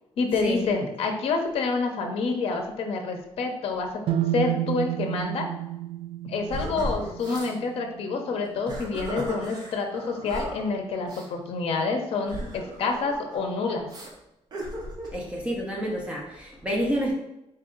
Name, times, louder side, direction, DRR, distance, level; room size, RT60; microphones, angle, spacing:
voice 1, 0.2-3.9 4.3-5.5 6.2-13.9, left 4 dB, 60° left, 3 dB, 0.6 m, -28 dB
sound 1, 4.1-8.0, right 13 dB, 60° right, 0.4 m, -30 dB
sound 2, 6.5-7.5 8.4-10.6 11.0-11.3 12.2-13.4 13.9-14.1 14.5-15.2, right 1 dB, 40° right, 0.9 m, -36 dB
voice 2, 15.1-17.1, equal, 10° right, -3 dB, 0.7 m, -29 dB
4.2 x 2.6 x 3.8 m, 0.89 s
cardioid pair, 165°, 11 cm